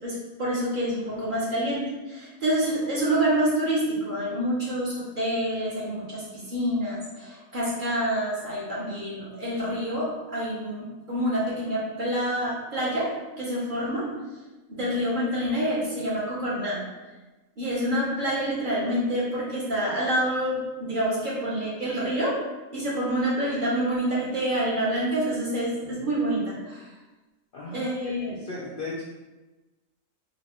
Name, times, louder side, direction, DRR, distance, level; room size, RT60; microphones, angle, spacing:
voice 1, 0.0-13.1 13.4-14.1 14.7-16.8 17.6-22.4 22.7-26.9 27.7-28.3, right 1 dB, 40° right, -7 dB, 1.0 m, -27 dB
voice 2, 27.5-29.0, left 2 dB, 55° left, -6 dB, 0.6 m, -36 dB
4.0 x 2.4 x 3.0 m, 1.1 s
omnidirectional pair, 1.4 m